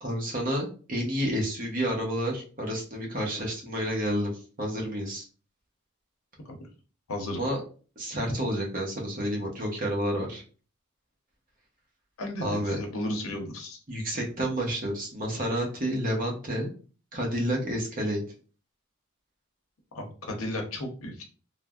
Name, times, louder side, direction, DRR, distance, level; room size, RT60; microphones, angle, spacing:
voice 1, 0.0-5.2 7.3-7.6 8.0-10.4 12.4-12.8 13.9-16.7 17.1-18.2, equal, 40° right, 0 dB, 0.8 m, -30 dB
voice 2, 7.1-7.4 12.2-13.8 19.9-21.2, left 1 dB, 75° left, 2 dB, 0.7 m, -34 dB
3.3 x 2.0 x 2.3 m, 0.38 s
head